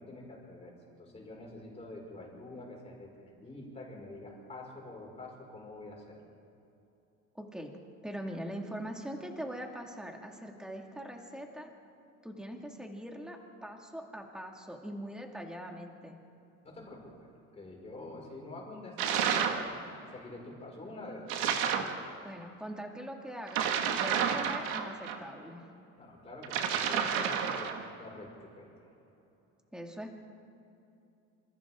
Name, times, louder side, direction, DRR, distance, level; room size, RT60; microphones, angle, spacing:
voice 1, 0.0-6.2 16.6-21.4 26.0-28.9, left 2 dB, 20° left, -2 dB, 5.4 m, -46 dB
voice 2, 7.3-7.7 8.0-11.7 12.2-16.2 22.2-25.7 29.7-30.1, equal, ahead, 1 dB, 2.1 m, -42 dB
sound 1, 19.0-19.7 21.3-22.0 23.5-25.2 26.4-27.8, right 8 dB, 90° right, 2.0 m, -30 dB
27.5 x 26.0 x 3.7 m, 2.8 s
cardioid pair, 150°, 33 cm